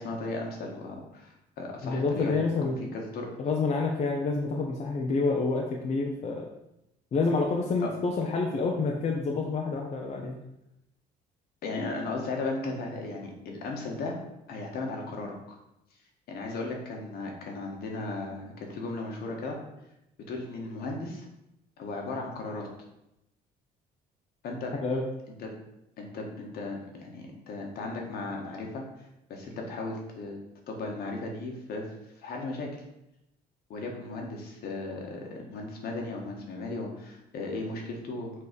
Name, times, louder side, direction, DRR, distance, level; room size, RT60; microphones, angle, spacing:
voice 1, 0.0-2.4 2.9-3.3 7.8-7.9 11.6-14.2 14.5-15.3 16.3-19.6 20.3-21.3 21.8-22.7 24.4-24.7 25.4-25.5 26.0-28.8 29.3-30.4 30.7-31.8 32.2-32.7 33.7-38.3, left 3 dB, 65° left, 1 dB, 1.7 m, -36 dB
voice 2, 1.8-2.8 3.4-6.5 7.1-10.4 24.8-25.0, left 3 dB, 45° left, 0 dB, 0.9 m, -28 dB
6.9 x 3.3 x 5.2 m, 0.86 s
cardioid pair, 110°, 17 cm